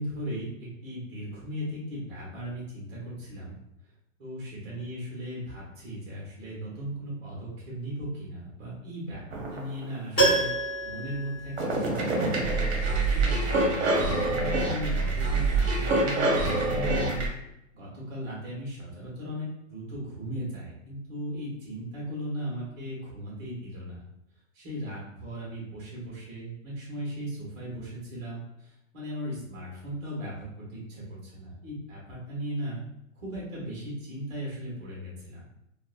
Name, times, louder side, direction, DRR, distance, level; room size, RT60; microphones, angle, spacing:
voice 1, 0.0-3.6 4.2-10.5 10.8-14.0 14.6-17.3 17.7-24.0 24.5-28.7 28.9-32.8 33.2-35.6, equal, 25° right, -6 dB, 0.8 m, -37 dB
sound 1, 9.3-10.0 11.6-17.3, right 2 dB, 55° right, 0.8 m, -26 dB
Piano, 10.2-12.2 12.5-12.6, right 2 dB, 10° left, 0.6 m, -27 dB
2.8 x 2.1 x 2.3 m, 0.83 s
hypercardioid pair, 160°, 39 cm